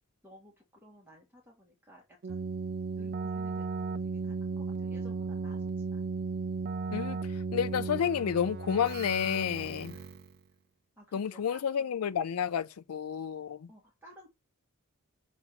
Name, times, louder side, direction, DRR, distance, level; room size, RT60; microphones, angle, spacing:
voice 1, 0.2-2.5 3.0-6.0 9.7-10.2 11.0-11.6 13.7-14.3, equal, 10° right, 2.0 m, -56 dB
Keyboard (musical), 2.2-10.4, right 4 dB, 45° right, 0.4 m, -35 dB
voice 2, 7.5-10.0 11.1-13.7, left 8 dB, 90° left, 0.4 m, -30 dB
6.6 x 4.1 x 5.8 m
head